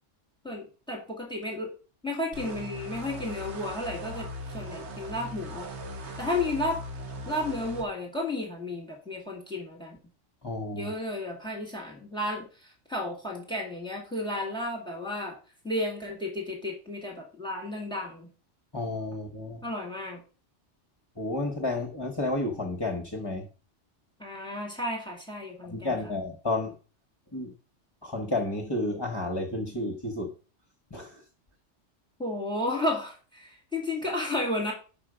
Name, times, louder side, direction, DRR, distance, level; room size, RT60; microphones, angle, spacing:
voice 1, 0.4-1.7 2.0-5.7 6.2-6.8 7.3-10.0 10.7-15.4 15.6-18.3 19.6-20.2 24.2-25.9 32.2-34.7, left 1 dB, 5° left, -1 dB, 2.1 m, -33 dB
sound 1, 2.3-7.8, equal, 70° right, 1.4 m, -39 dB
voice 2, 10.4-10.9 18.7-19.6 21.2-23.5 25.7-26.8 27.3-27.5 28.0-30.3 30.9-31.2, left 2 dB, 25° left, 2 dB, 0.9 m, -31 dB
5.9 x 5.8 x 5.0 m, 0.36 s
omnidirectional pair, 1.2 m